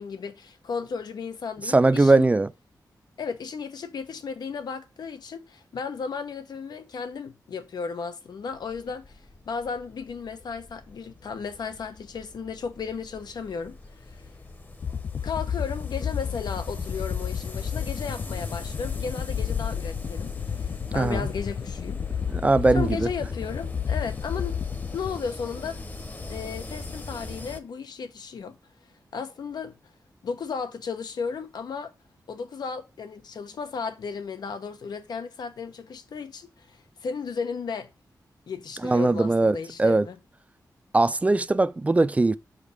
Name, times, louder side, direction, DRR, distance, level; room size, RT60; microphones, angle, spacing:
voice 1, 0.0-2.3 3.2-13.8 15.2-22.0 22.7-24.6 24.9-25.8 26.3-28.6 29.1-29.8 30.2-31.9 32.3-37.9 38.5-40.2, left 5 dB, 85° left, 1.0 m, -34 dB
voice 2, 1.7-2.5 20.9-21.3 22.3-23.1 38.8-40.1 40.9-42.4, right 2 dB, 20° right, 0.4 m, -20 dB
sound 1, 8.5-27.6, left 3 dB, 25° left, 0.9 m, -41 dB
sound 2, 14.8-25.2, left 7 dB, 50° left, 0.4 m, -31 dB
6.4 x 4.9 x 5.1 m
wide cardioid pair, 150°, 7 cm